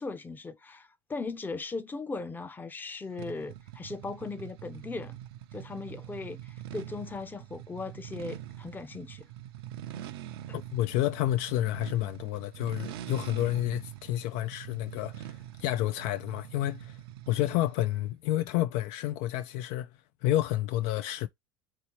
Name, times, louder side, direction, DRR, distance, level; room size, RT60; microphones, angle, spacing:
voice 1, 0.0-5.2 5.5-9.3, left 3 dB, 15° left, 0.6 m, -38 dB
sound 1, 3.2-17.9, right 12 dB, 80° right, 0.6 m, -44 dB
voice 2, 10.5-17.0 17.3-19.9 20.2-21.3, left 14 dB, 60° left, 0.4 m, -30 dB
3.1 x 2.8 x 2.9 m
hypercardioid pair, 90°, 13 cm